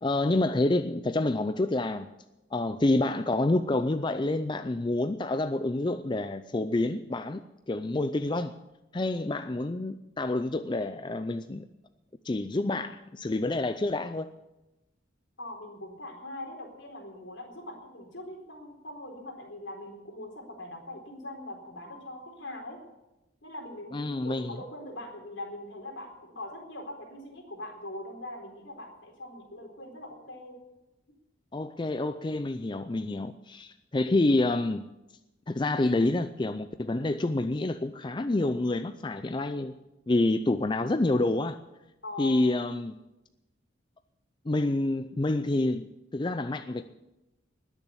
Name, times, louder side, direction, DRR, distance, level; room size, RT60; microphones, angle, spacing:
voice 1, 0.0-2.1 2.5-7.4 7.7-8.5 8.9-11.7 12.2-14.3 23.9-24.6 31.5-34.9 35.5-39.7 40.1-41.6 42.2-42.9 44.5-46.8, left 2 dB, 25° left, 10 dB, 0.4 m, -28 dB
voice 2, 15.4-22.8 23.4-30.5 42.0-42.4, left 1 dB, 75° left, 1 dB, 4.2 m, -42 dB
20.0 x 7.0 x 8.5 m, 0.97 s
head